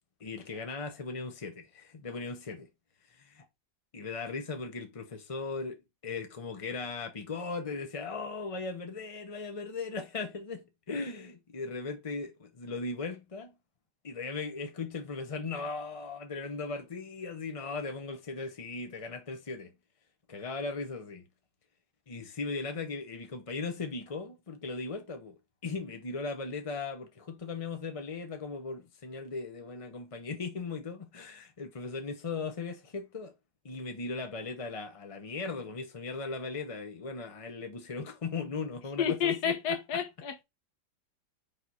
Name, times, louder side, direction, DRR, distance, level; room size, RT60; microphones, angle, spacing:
voice 1, 0.2-2.7 3.1-3.5 3.9-13.5 14.0-19.7 20.3-21.2 22.1-25.4 25.6-33.3 33.6-39.5, left 4 dB, 35° left, 0.5 m, -38 dB
voice 2, 39.0-40.4, left 8 dB, 70° left, 1.3 m, -30 dB
5.4 x 4.6 x 4.0 m
omnidirectional pair, 1.8 m